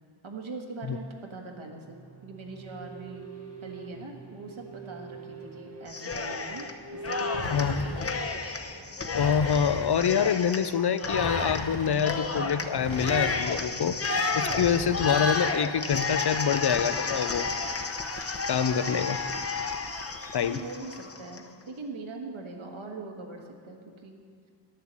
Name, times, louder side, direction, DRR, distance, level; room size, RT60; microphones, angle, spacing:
voice 1, 0.2-3.3 3.6-8.0 20.4-24.2, right 3 dB, 75° right, 1 dB, 1.6 m, -42 dB
sound 1, 1.5-16.2, right 1 dB, 30° right, 1.4 m, -45 dB
Cheering, 5.9-6.7 7.0-21.4, left 3 dB, 30° left, 0.9 m, -32 dB
sound 2, 7.3-8.2 9.1-10.0 11.0-11.9 12.8-13.7 14.5-15.4, left 2 dB, 70° left, 1.5 m, -36 dB
voice 2, 7.5-7.9 9.1-14.0 14.4-17.5 18.5-19.2 20.3-20.6, left 7 dB, 55° left, 13 dB, 0.6 m, -26 dB
10.0 x 7.5 x 7.5 m, 2.2 s
cardioid pair, 60°, 48 cm